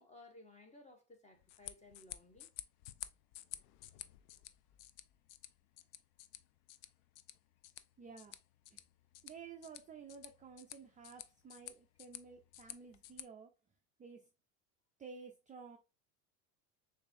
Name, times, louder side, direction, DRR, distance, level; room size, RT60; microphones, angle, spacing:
voice 1, 0.0-2.5, left 2 dB, 15° left, 1.2 m, -59 dB
sound 1, 1.3-13.2, left 14 dB, 65° left, 0.5 m, -53 dB
voice 2, 8.0-8.4 8.7-8.8 9.2-13.5 14.0-14.3 15.0-15.8, right 5 dB, 15° right, 0.4 m, -53 dB
6.6 x 2.7 x 2.5 m
supercardioid pair, 105°, 46 cm